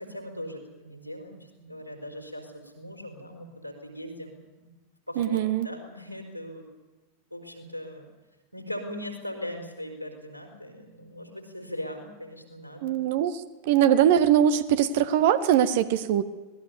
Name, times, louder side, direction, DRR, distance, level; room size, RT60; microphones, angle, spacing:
voice 1, 0.0-4.7 5.1-6.6 7.3-8.1 8.5-13.0, left 1 dB, 90° left, 4 dB, 4.7 m, -39 dB
voice 2, 5.2-5.7 12.8-13.3 13.6-16.2, right 10 dB, 50° right, 12 dB, 1.7 m, -21 dB
25.0 x 19.5 x 7.1 m, 1.2 s
figure-of-eight pair, 90°, 0 cm